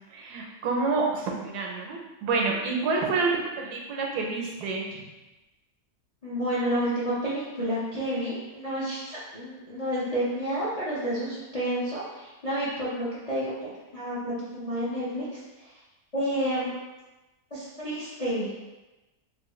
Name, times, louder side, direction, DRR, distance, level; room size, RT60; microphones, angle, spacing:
voice 1, 0.1-5.0, right 4 dB, 85° right, 0 dB, 1.2 m, -28 dB
voice 2, 6.2-15.7 16.1-16.7 17.5-18.5, equal, 45° left, -9 dB, 0.4 m, -30 dB
3.5 x 2.1 x 3.1 m, 1.1 s
omnidirectional pair, 1.7 m